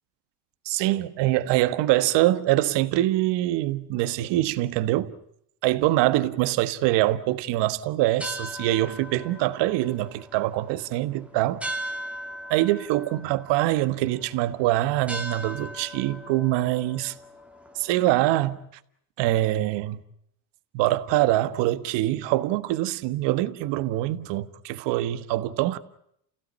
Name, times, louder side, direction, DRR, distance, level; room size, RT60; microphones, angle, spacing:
voice 1, 0.6-5.1 5.6-11.6 12.5-17.1 17.7-18.6 19.2-20.0 20.7-25.8, right 15 dB, 65° right, 1.5 m, -24 dB
sound 1, 8.0-18.5, equal, 5° right, 2.3 m, -39 dB
29.5 x 16.5 x 10.0 m
supercardioid pair, 105°, 45 cm